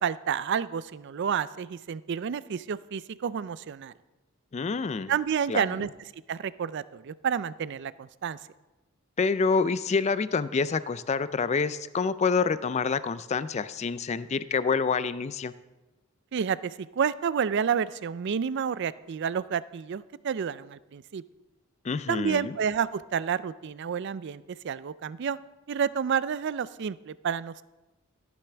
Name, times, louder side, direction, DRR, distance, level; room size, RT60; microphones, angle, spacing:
voice 1, 0.0-3.9 5.1-5.9 6.3-8.4 16.3-21.2 22.1-25.4 25.7-27.6, right 7 dB, 55° right, 17 dB, 0.4 m, -30 dB
voice 2, 4.5-5.1 5.5-5.7 9.2-15.5 21.8-22.6, left 5 dB, 30° left, 15 dB, 0.3 m, -27 dB
13.0 x 11.5 x 3.4 m, 1.1 s
head